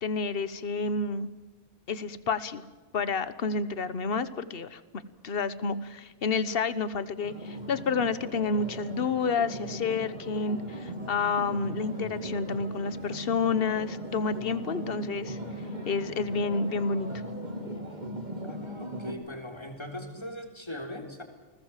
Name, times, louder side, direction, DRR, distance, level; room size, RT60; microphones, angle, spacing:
voice 1, 0.0-1.3 1.9-2.6 2.9-4.8 5.2-15.4 15.9-17.1, left 4 dB, 55° left, 14 dB, 1.3 m, -29 dB
sound 1, 7.2-19.1, equal, 40° right, 3.1 m, -38 dB
voice 2, 18.4-21.2, left 1 dB, 25° left, 3 dB, 3.8 m, -40 dB
29.5 x 20.0 x 7.5 m, 1.2 s
omnidirectional pair, 1.2 m